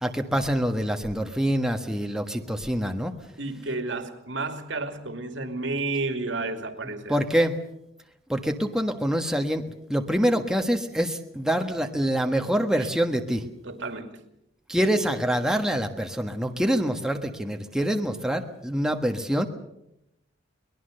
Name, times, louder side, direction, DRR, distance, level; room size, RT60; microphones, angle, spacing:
voice 1, 0.0-3.1 7.1-7.6 8.3-9.6 9.9-13.4 14.7-19.5, equal, 5° right, 4 dB, 1.3 m, -25 dB
voice 2, 3.4-7.2 12.8-12.9 13.6-14.1 14.8-14.9, right 3 dB, 70° right, 6 dB, 2.7 m, -31 dB
23.5 x 21.0 x 6.7 m, 0.83 s
head